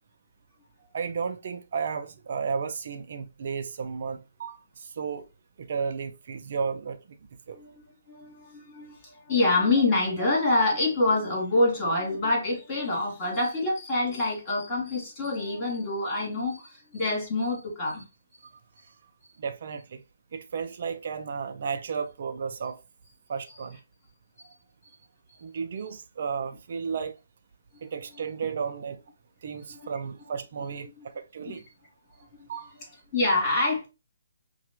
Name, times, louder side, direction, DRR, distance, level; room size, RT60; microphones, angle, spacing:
voice 1, 0.9-5.3 5.6-7.2 7.5-7.6 19.4-20.0 20.3-22.8 23.3-23.8 25.4-27.1 27.8-29.0 29.4-31.6 32.5-32.7, right 6 dB, 55° right, 0.4 m, -33 dB
voice 2, 7.5-18.0 24.4-24.5 27.7-27.8 29.7-29.9 31.0-31.1 31.5-31.6 32.4-32.5 33.1-33.9, left 2 dB, 25° left, 2.5 m, -26 dB
5.6 x 2.2 x 2.9 m
hypercardioid pair, 155°, 0 cm